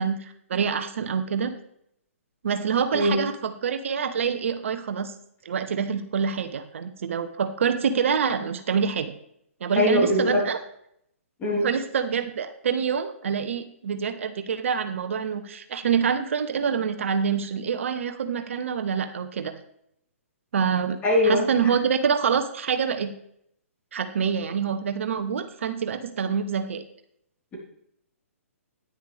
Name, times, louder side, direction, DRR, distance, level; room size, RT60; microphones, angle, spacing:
voice 1, 0.0-1.5 2.4-5.1 5.4-9.1 9.6-10.6 11.5-19.5 20.5-21.0 21.2-23.1 23.9-26.8, right 7 dB, 60° right, 8 dB, 0.9 m, -26 dB
voice 2, 9.8-10.4 11.4-11.7 21.0-21.7, left 1 dB, 20° left, -3 dB, 3.7 m, -22 dB
9.9 x 9.9 x 3.4 m, 0.72 s
figure-of-eight pair, 130°, 8 cm